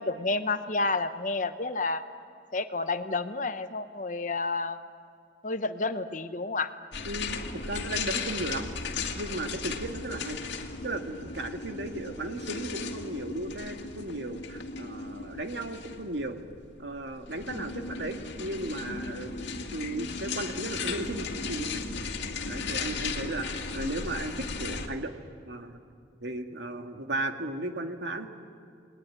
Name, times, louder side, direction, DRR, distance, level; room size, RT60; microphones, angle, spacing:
voice 1, 0.0-2.0 2.5-4.8 5.4-6.7, left 3 dB, 45° left, 10 dB, 1.0 m, -30 dB
sound 1, 6.9-24.9, left 4 dB, 85° left, 2.1 m, -36 dB
voice 2, 7.1-8.7 9.2-10.4 10.8-16.4 16.8-21.8 22.5-25.2 25.5-25.8 26.2-28.3, right 2 dB, 85° right, 4 dB, 2.1 m, -35 dB
29.0 x 20.5 x 9.9 m, 2.3 s
head